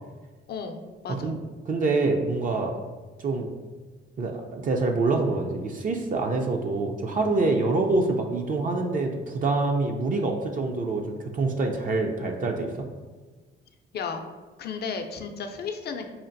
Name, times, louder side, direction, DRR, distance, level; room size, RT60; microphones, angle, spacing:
voice 1, 0.5-1.3 13.9-14.3 14.6-16.1, left 5 dB, 55° left, 6 dB, 0.5 m, -34 dB
voice 2, 1.7-2.7 3.2-3.5 4.2-12.9, right 3 dB, 45° right, 2 dB, 0.5 m, -26 dB
5.6 x 2.5 x 2.6 m, 1.3 s
cardioid pair, 90°, 20 cm